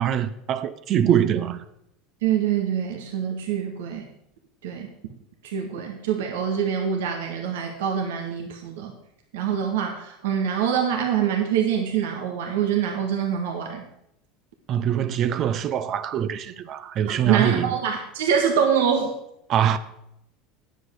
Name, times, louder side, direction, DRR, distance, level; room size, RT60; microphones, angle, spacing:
voice 1, 0.0-1.6 14.7-17.7 19.5-19.8, right 9 dB, 45° right, 0.7 m, -23 dB
voice 2, 2.2-4.0 4.6-4.9 5.4-8.9 9.3-13.8 17.2-19.1, right 8 dB, 85° right, 1.6 m, -25 dB
9.3 x 8.0 x 6.4 m
supercardioid pair, 105°, 0 cm